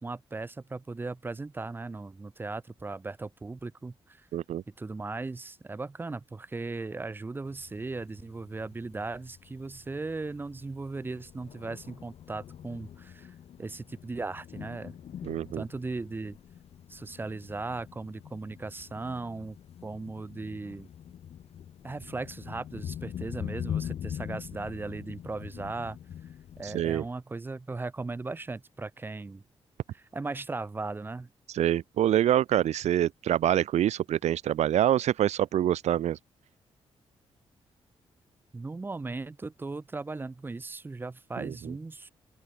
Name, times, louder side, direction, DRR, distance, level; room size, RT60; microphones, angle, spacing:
voice 1, 0.0-4.2 4.8-14.9 15.5-16.4 16.9-19.6 19.8-20.9 21.8-26.0 26.6-29.4 29.9-31.3 38.5-42.1, right 3 dB, 20° right, 3.7 m, -37 dB
voice 2, 4.3-4.6 15.2-15.6 26.6-27.0 31.5-36.2 41.4-41.7, right 11 dB, 90° right, 0.8 m, -26 dB
Thunder, 7.5-26.8, left 9 dB, 65° left, 2.4 m, -43 dB
open air
wide cardioid pair, 180°, 11 cm